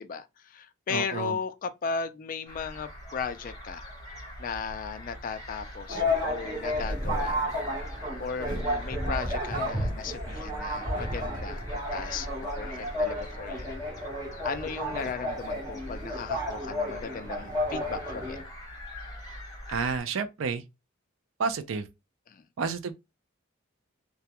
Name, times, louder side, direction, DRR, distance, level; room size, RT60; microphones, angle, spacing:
voice 1, 0.0-3.9 4.4-7.4 8.2-12.3 12.6-13.7 14.4-18.4 22.3-22.4, left 5 dB, 40° left, 0.3 m, -36 dB
voice 2, 0.9-1.4 19.7-20.6 21.4-21.9 22.6-22.9, right 5 dB, 70° right, 0.4 m, -30 dB
sound 1, 2.5-20.0, left 1 dB, 15° left, 1.0 m, -43 dB
sound 2, 5.9-18.4, left 1 dB, 20° right, 0.9 m, -32 dB
2.3 x 2.1 x 2.8 m
head